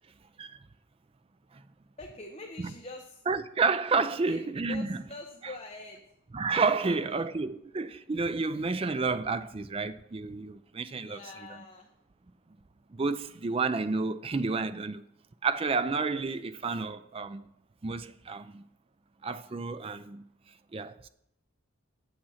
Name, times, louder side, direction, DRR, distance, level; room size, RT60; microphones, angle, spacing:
voice 1, 2.0-3.2 4.2-4.4 4.7-6.1 6.8-7.2 11.0-11.9, left 2 dB, 30° left, 0.9 m, -44 dB
voice 2, 3.3-5.0 6.3-11.2 12.9-15.0 15.4-17.4 17.8-18.6 19.2-20.2 20.7-21.1, right 4 dB, 25° right, 0.4 m, -30 dB
8.7 x 7.5 x 5.6 m
head